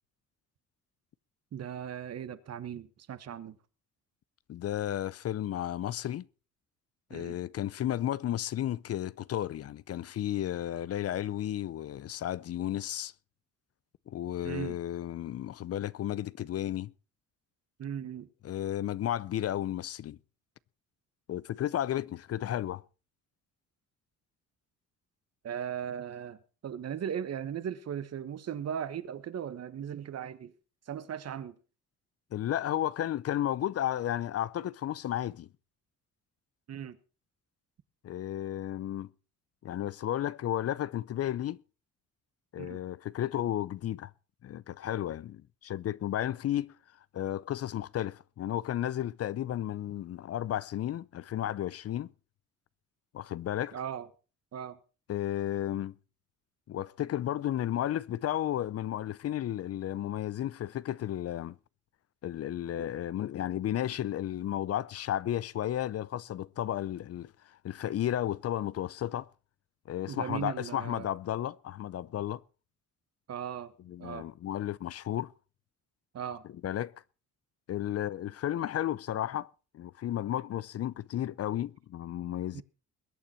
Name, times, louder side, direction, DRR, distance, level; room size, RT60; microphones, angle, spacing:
voice 1, 1.5-3.6 7.1-7.4 14.4-14.8 17.8-18.3 25.4-26.4 26.6-30.5 30.9-31.5 36.7-37.0 42.6-42.8 53.7-54.1 54.5-54.8 70.1-71.1 73.3-73.7 74.0-74.3 76.1-76.4 82.5-82.6, right 9 dB, 55° right, 1.3 m, -37 dB
voice 2, 4.5-6.3 7.1-13.1 14.1-16.9 18.4-20.2 21.3-22.8 32.3-35.5 38.0-39.1 39.6-41.6 42.5-44.1 44.4-46.8 47.1-52.1 53.1-53.8 55.1-56.0 56.7-61.6 62.2-69.3 69.9-72.4 73.9-75.3 76.6-76.9 77.7-82.6, left 12 dB, 55° left, 0.6 m, -33 dB
21.5 x 8.8 x 4.4 m
cardioid pair, 90°, 30 cm